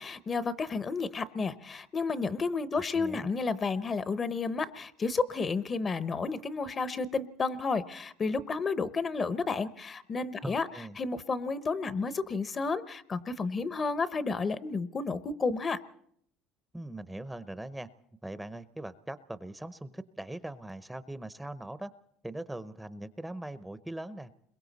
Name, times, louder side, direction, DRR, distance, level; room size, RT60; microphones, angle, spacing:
voice 1, 0.0-10.7 11.0-15.8, left 4 dB, 30° left, 15 dB, 0.8 m, -31 dB
voice 2, 2.7-3.3 10.4-11.0 16.7-17.9 18.2-21.9 22.2-24.3, right 1 dB, 5° right, 13 dB, 0.7 m, -41 dB
29.5 x 22.0 x 4.1 m, 0.70 s
supercardioid pair, 105°, 0 cm